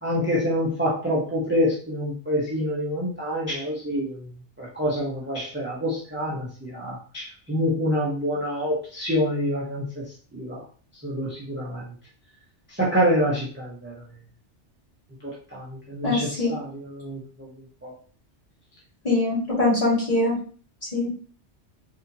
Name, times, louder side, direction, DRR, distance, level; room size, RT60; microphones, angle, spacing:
voice 1, 0.0-4.1 4.6-10.0 10.3-10.6 11.0-11.8 12.8-13.9 15.2-16.2 16.5-16.6 16.9-17.2 17.8-17.9, equal, 10° right, -5 dB, 0.7 m, -26 dB
voice 2, 16.0-16.5 19.0-20.4 20.9-21.1, left 2 dB, 30° left, -7 dB, 1.7 m, -22 dB
4.2 x 2.7 x 2.6 m, 0.41 s
omnidirectional pair, 1.2 m